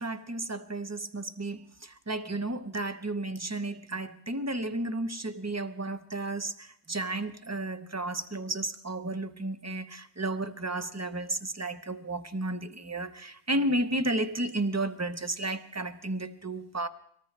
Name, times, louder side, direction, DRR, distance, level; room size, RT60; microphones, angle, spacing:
voice 1, 0.0-16.9, right 2 dB, 20° right, 10 dB, 0.6 m, -33 dB
24.0 x 18.5 x 3.2 m, 0.66 s
omnidirectional pair, 1.1 m